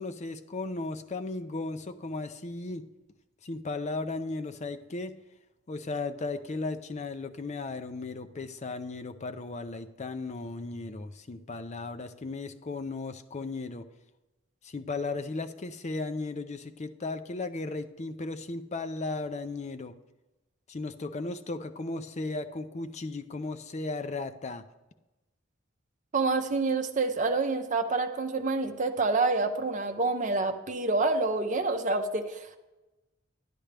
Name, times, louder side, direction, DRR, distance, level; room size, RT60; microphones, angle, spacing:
voice 1, 0.0-2.8 3.4-5.2 5.7-13.9 14.6-19.9 20.7-24.6, left 3 dB, 35° left, 9 dB, 0.5 m, -36 dB
voice 2, 26.1-32.6, right 3 dB, 40° right, 5 dB, 0.8 m, -27 dB
12.0 x 10.0 x 3.4 m, 1.1 s
head